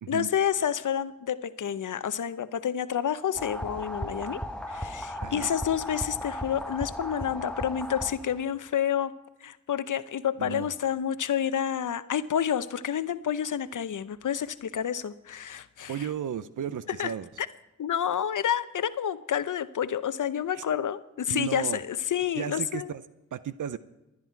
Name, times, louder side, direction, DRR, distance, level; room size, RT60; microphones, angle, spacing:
voice 1, 0.1-4.4 4.7-9.1 9.4-16.1 16.9-17.1 17.4-17.5 17.8-22.9, left 9 dB, 70° left, 14 dB, 0.7 m, -29 dB
sound 1, 3.3-8.4, left 1 dB, 5° left, 1.0 m, -36 dB
voice 2, 10.4-10.7 15.9-17.3 20.5-20.6 21.3-21.8 22.4-23.0 23.3-23.8, right 9 dB, 75° right, 14 dB, 0.6 m, -34 dB
28.5 x 9.8 x 4.6 m, 1.0 s
cardioid pair, 45°, 31 cm